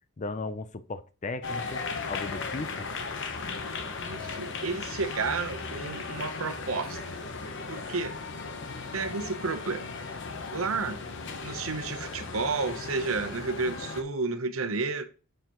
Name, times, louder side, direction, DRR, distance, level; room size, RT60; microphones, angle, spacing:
voice 1, 0.2-2.9, left 3 dB, 35° left, 0.5 m, -36 dB
sound 1, 1.4-14.0, left 4 dB, 60° left, 1.0 m, -37 dB
voice 2, 4.0-7.0 7.7-8.2 8.9-9.9 10.5-11.0 11.4-15.0, right 4 dB, 70° right, 0.9 m, -31 dB
7.7 x 6.8 x 3.1 m
head